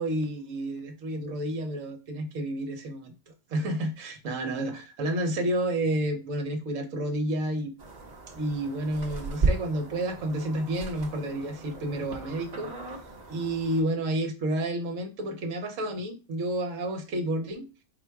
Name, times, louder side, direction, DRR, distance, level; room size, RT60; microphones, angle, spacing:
voice 1, 0.0-3.1 3.5-7.7 8.3-12.8 13.3-17.7, right 1 dB, 60° right, 1.1 m, -30 dB
sound 1, 7.8-13.8, right 3 dB, 35° right, 0.7 m, -34 dB
4.3 x 2.2 x 4.6 m
omnidirectional pair, 1.7 m